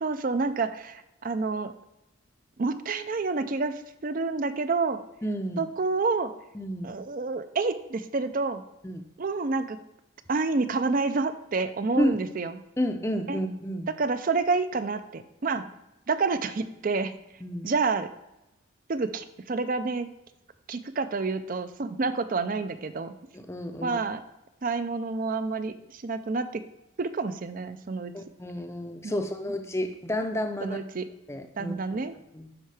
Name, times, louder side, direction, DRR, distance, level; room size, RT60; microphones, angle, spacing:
voice 1, 0.0-1.7 2.6-5.0 5.6-6.3 6.8-8.6 9.2-9.8 10.3-12.6 13.3-13.4 14.0-15.6 16.1-17.1 17.6-18.1 18.9-20.1 20.7-23.2 23.8-24.2 24.6-26.6 27.0-28.1 29.0-29.2 30.6-31.1 31.6-32.2, right 4 dB, 40° right, 11 dB, 0.4 m, -28 dB
voice 2, 5.2-5.6 6.5-7.0 8.8-9.0 12.0-12.1 12.8-13.9 17.4-17.7 23.3-24.0 28.1-30.8 31.3-32.0 32.3-32.5, equal, 15° left, 5 dB, 0.5 m, -31 dB
12.0 x 4.5 x 3.4 m, 0.93 s
head